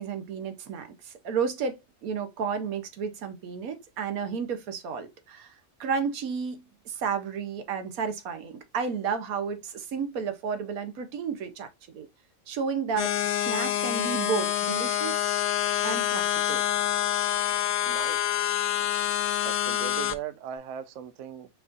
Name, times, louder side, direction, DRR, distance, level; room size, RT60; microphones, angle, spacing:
voice 1, 0.0-12.1 12.5-15.3 15.8-16.6, right 6 dB, 90° right, 1.3 m, -32 dB
sound 1, 13.0-20.1, left 11 dB, 85° left, 1.1 m, -27 dB
voice 2, 17.9-18.3 19.4-21.5, right 9 dB, 70° right, 0.8 m, -38 dB
4.7 x 2.5 x 3.8 m
omnidirectional pair, 1.5 m